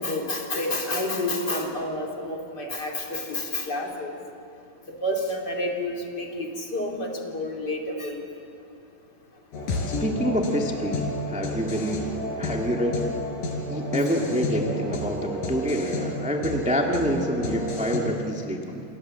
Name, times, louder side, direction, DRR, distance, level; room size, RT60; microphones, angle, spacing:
voice 1, 0.0-4.1 4.9-8.2, left 1 dB, 30° left, 1 dB, 3.1 m, -29 dB
sound 1, 9.5-18.0, left 1 dB, 85° left, 5.2 m, -30 dB
voice 2, 10.0-13.0 13.7-18.8, equal, 5° right, 1 dB, 0.9 m, -27 dB
28.5 x 27.5 x 7.6 m, 2.6 s
omnidirectional pair, 3.9 m